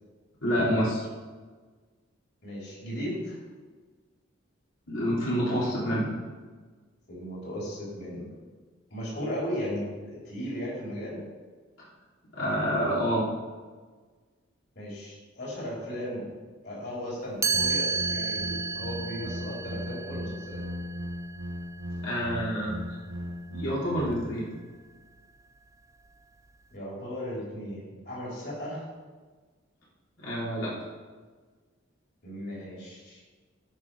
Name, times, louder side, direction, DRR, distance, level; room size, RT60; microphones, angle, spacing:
voice 1, 0.4-1.1 4.9-6.1 11.8-11.9 12.3-13.2 22.0-22.8 23.5-24.5 30.2-30.7, equal, 90° left, -7 dB, 3.6 m, -27 dB
voice 2, 2.4-3.4 7.1-8.3 8.9-11.2 14.7-16.3 16.6-20.6 26.7-28.9 32.2-33.2, equal, 55° left, -5 dB, 3.9 m, -36 dB
Chime, 17.4-23.3, right 5 dB, 15° right, 0.4 m, -33 dB
sound 1, 17.5-24.1, equal, 75° right, 0.9 m, -37 dB
17.0 x 5.7 x 4.9 m, 1.4 s
head